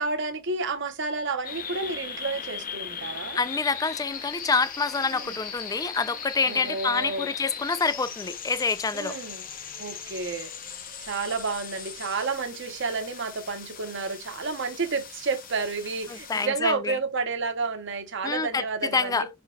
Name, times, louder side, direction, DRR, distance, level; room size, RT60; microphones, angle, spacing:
voice 1, 0.0-3.4 5.1-5.4 6.5-7.3 8.9-9.5 9.8-10.5 11.0-19.3, right 4 dB, 65° right, 0.9 m, -30 dB
sound 1, 1.4-16.4, left 7 dB, 45° left, 0.7 m, -39 dB
voice 2, 3.3-9.2 16.1-17.0 18.2-19.3, left 4 dB, 20° left, 0.3 m, -27 dB
5.3 x 4.3 x 2.3 m
head